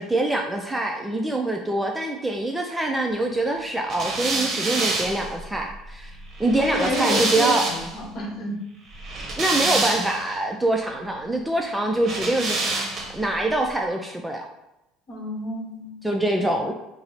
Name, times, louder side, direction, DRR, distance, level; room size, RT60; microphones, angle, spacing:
voice 1, 0.0-6.1 6.4-7.7 9.4-12.7 13.1-14.5 16.0-16.7, right 1 dB, 5° right, 2 dB, 0.3 m, -24 dB
sound 1, 3.9-8.0 8.9-10.4 12.0-13.3, right 2 dB, 35° right, 0.8 m, -27 dB
voice 2, 6.6-8.6 15.1-16.0 16.4-16.5, equal, 45° left, -1 dB, 1.0 m, -30 dB
4.1 x 2.0 x 4.0 m, 0.91 s
supercardioid pair, 115°, 0 cm